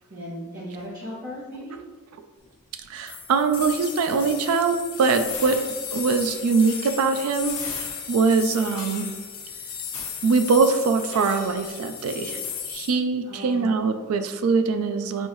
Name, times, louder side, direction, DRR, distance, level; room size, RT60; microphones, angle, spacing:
voice 1, 0.1-1.8 13.2-13.7, equal, 45° right, -9 dB, 1.2 m, -36 dB
voice 2, 2.9-5.6 5.9-9.1 10.2-15.3, right 4 dB, 75° right, 8 dB, 0.3 m, -23 dB
sound 1, 3.1-12.9, left 7 dB, 85° left, 0.9 m, -35 dB
6.3 x 2.7 x 3.0 m, 1.4 s
head